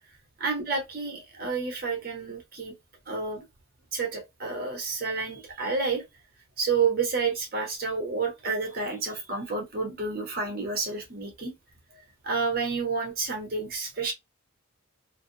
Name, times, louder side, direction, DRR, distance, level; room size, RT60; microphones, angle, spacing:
voice 1, 0.4-2.7 3.1-3.4 3.9-6.0 6.6-11.5 12.2-14.1, right 4 dB, 45° right, 1.0 m, -30 dB
2.6 x 2.3 x 2.7 m
head